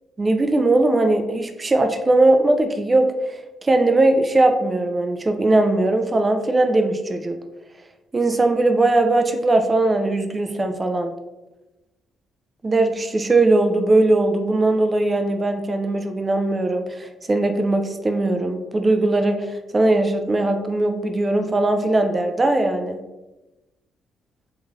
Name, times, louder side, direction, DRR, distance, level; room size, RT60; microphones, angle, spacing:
voice 1, 0.2-3.1 3.6-7.3 8.1-11.1 12.6-19.5 19.7-23.0, right 2 dB, 25° right, 6 dB, 0.3 m, -19 dB
2.4 x 2.4 x 3.0 m, 1.0 s
cardioid pair, 90°, 0 cm